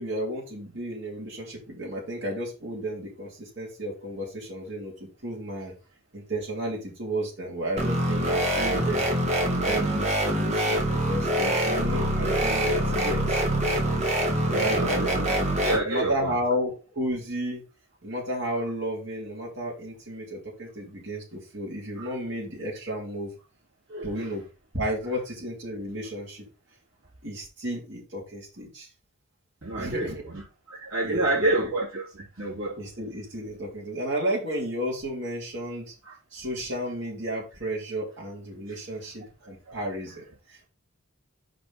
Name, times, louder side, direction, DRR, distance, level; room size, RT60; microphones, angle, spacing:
voice 1, 0.0-4.9 5.2-5.7 6.1-9.1 9.6-13.4 14.5-15.5 15.8-17.6 18.0-23.3 24.0-24.4 24.7-26.5 27.2-28.9 29.8-30.2 31.0-31.7 32.7-35.9 36.3-40.7, right 1 dB, 55° right, 3.4 m, -32 dB
sound 1, 7.8-15.8, right 1 dB, 30° right, 1.6 m, -25 dB
voice 2, 14.3-15.2 15.6-16.4 22.0-22.1 23.9-24.3 29.6-32.8 36.0-36.1 38.7-38.8 39.7-39.8, right 2 dB, 70° right, 3.1 m, -29 dB
5.3 x 5.2 x 5.8 m
head